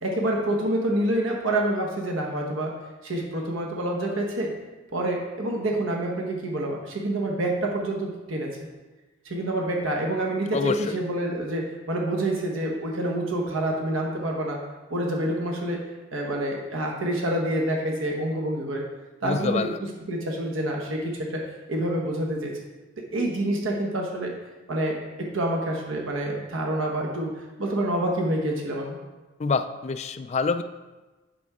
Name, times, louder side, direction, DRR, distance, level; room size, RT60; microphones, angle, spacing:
voice 1, 0.0-2.7 3.0-4.5 4.9-8.5 9.2-14.6 14.9-15.8 16.1-18.8 19.2-19.7 20.1-21.4 21.7-22.5 23.1-24.3 24.7-29.0, right 1 dB, 85° right, 0 dB, 1.1 m, -27 dB
voice 2, 10.5-11.0 19.2-19.8 29.4-30.6, left 4 dB, 35° left, 9 dB, 0.3 m, -26 dB
8.4 x 6.2 x 3.6 m, 1.2 s
head